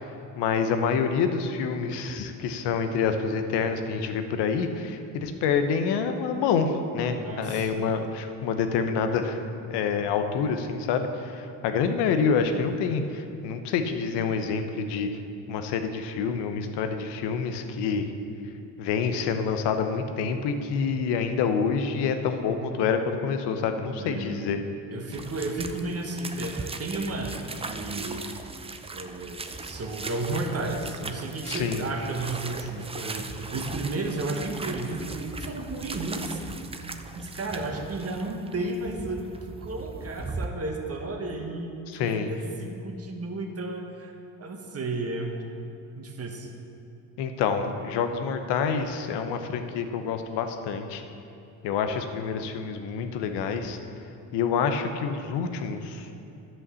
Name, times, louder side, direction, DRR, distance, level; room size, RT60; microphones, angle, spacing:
voice 1, 0.4-9.4 9.7-15.1 15.5-18.1 18.8-24.6 31.4-31.8 41.9-42.3 47.2-51.0 51.6-53.8 54.3-56.1, left 6 dB, 85° left, 7 dB, 0.9 m, -27 dB
voice 2, 7.2-7.9 23.9-24.4 24.9-28.2 28.9-36.4 37.1-39.3 39.6-44.1 44.4-45.3 45.9-46.5, right 2 dB, 35° right, 2 dB, 1.5 m, -33 dB
sound 1, 25.1-40.5, right 3 dB, 15° right, 0.6 m, -38 dB
11.0 x 5.6 x 7.0 m, 2.7 s
supercardioid pair, 80°, 40 cm